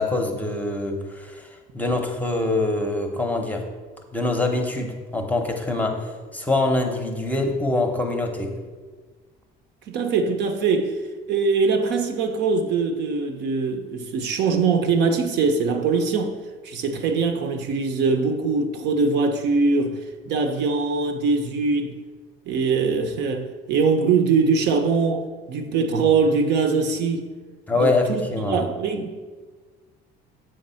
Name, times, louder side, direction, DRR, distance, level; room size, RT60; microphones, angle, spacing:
voice 1, 0.0-3.7 4.1-8.5 27.7-28.6, left 2 dB, 10° left, 0.8 m, -24 dB
voice 2, 9.9-11.0 11.3-16.3 16.6-20.0 20.3-21.9 22.5-27.3 27.8-28.2 28.5-29.4, right 4 dB, 60° right, 0.8 m, -22 dB
7.7 x 3.5 x 5.6 m
cardioid pair, 130°, 20 cm